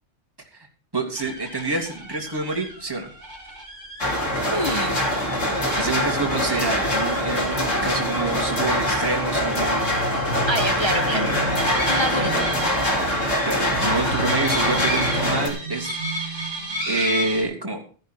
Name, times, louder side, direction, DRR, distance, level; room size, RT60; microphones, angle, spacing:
voice 1, 0.9-3.1 5.8-9.8 11.1-11.3 13.4-16.5 16.9-17.8, right 3 dB, 20° right, 1 dB, 2.6 m, -27 dB
sound 1, 1.1-17.4, equal, 35° right, 4.1 m, -34 dB
sound 2, 4.0-15.5, equal, 85° left, 3.6 m, -23 dB
voice 2, 4.5-5.1 10.5-11.3 11.9-12.5, equal, 25° left, 6 dB, 1.0 m, -26 dB
sound 3, 9.9-17.5, right 2 dB, 60° right, 4.0 m, -35 dB
13.5 x 11.5 x 4.5 m, 0.38 s
omnidirectional pair, 1.3 m